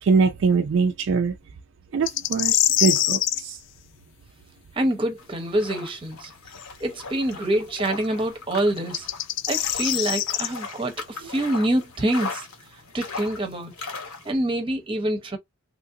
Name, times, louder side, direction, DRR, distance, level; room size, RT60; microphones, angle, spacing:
voice 1, 0.0-1.3 1.9-3.6, right 5 dB, 55° right, 0.3 m, -22 dB
sound 1, 2.1-3.4 6.6-6.7 8.8-10.5, left 13 dB, 55° left, 0.3 m, -23 dB
voice 2, 4.8-6.3 6.8-9.1 9.5-12.5 12.9-13.7 14.2-15.4, right 1 dB, 25° right, 0.7 m, -26 dB
sound 2, 5.2-14.3, left 4 dB, 80° left, 1.1 m, -38 dB
3.0 x 2.5 x 2.7 m
head